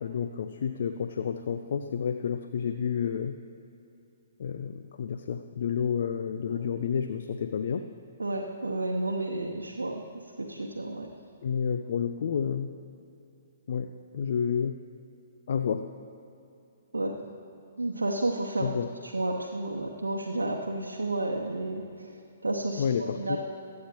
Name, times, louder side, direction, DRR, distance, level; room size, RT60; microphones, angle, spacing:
voice 1, 0.0-3.4 4.4-7.9 11.4-12.7 13.7-14.8 15.5-15.9 18.6-18.9 22.8-23.4, left 7 dB, 55° left, 8 dB, 0.4 m, -30 dB
voice 2, 8.2-10.0 10.4-11.1 16.9-17.1 17.8-18.7 19.0-23.4, right 2 dB, 75° right, -1 dB, 0.9 m, -31 dB
23.5 x 8.4 x 3.0 m, 2.8 s
figure-of-eight pair, 125°, 0 cm